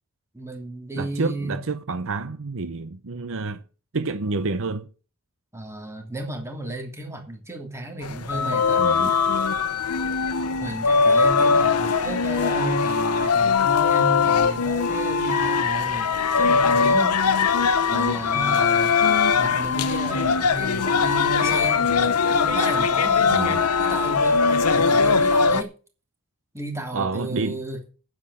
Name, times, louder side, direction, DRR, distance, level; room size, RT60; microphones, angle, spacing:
voice 1, 0.3-1.6 5.5-9.2 10.6-17.6 17.9-19.0 19.3-25.7 26.5-27.8, right 1 dB, 15° right, 2.9 m, -33 dB
voice 2, 1.0-3.6 3.9-4.9 8.8-9.1 23.3-23.6 26.9-27.6, right 3 dB, 65° right, 0.8 m, -28 dB
sound 1, 8.0-25.6, left 5 dB, 85° left, 0.9 m, -21 dB
9.8 x 7.9 x 7.4 m
head